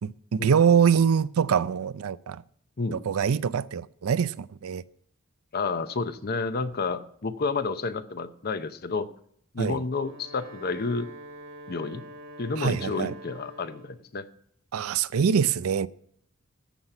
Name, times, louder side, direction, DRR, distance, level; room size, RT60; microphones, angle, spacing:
voice 1, 0.0-2.4 2.9-4.8 9.6-9.8 12.6-13.1 14.7-15.9, right 7 dB, 90° right, 0.4 m, -24 dB
voice 2, 5.5-9.1 9.5-11.1 11.7-12.0 12.4-14.3, left 4 dB, 45° left, 0.7 m, -30 dB
Wind instrument woodwind instrument, 9.8-14.1, right 1 dB, 60° right, 1.7 m, -45 dB
14.0 x 5.7 x 5.9 m
head